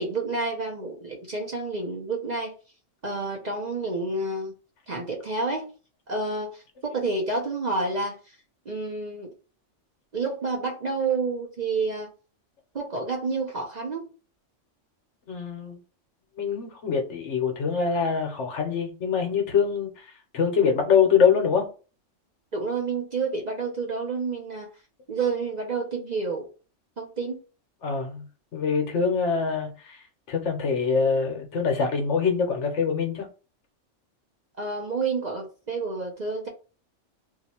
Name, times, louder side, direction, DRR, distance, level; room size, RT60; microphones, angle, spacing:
voice 1, 0.0-2.5 3.0-4.5 4.9-5.7 6.1-8.4 8.7-9.3 10.1-12.1 12.7-14.1 22.5-24.7 25.1-26.5 27.0-27.4 34.6-36.5, right 3 dB, 45° right, 0.7 m, -29 dB
voice 2, 15.3-15.8 16.4-21.7 27.8-28.2 28.5-33.3, left 6 dB, 65° left, 1.1 m, -24 dB
2.7 x 2.4 x 4.2 m
omnidirectional pair, 1.3 m